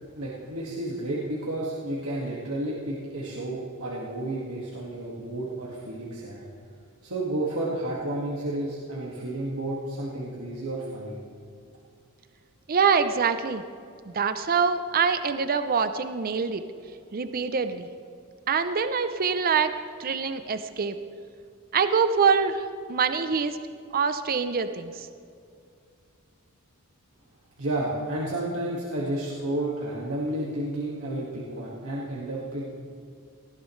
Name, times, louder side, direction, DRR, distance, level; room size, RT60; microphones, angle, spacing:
voice 1, 0.2-6.4 7.0-11.2 27.6-32.7, right 1 dB, 75° right, -5 dB, 1.9 m, -31 dB
voice 2, 12.7-13.6 14.1-16.6 17.1-17.9 18.5-19.7 20.0-21.0 21.7-23.6 23.9-25.1, right 5 dB, 45° right, 10 dB, 0.5 m, -25 dB
18.5 x 14.5 x 3.2 m, 2.4 s
head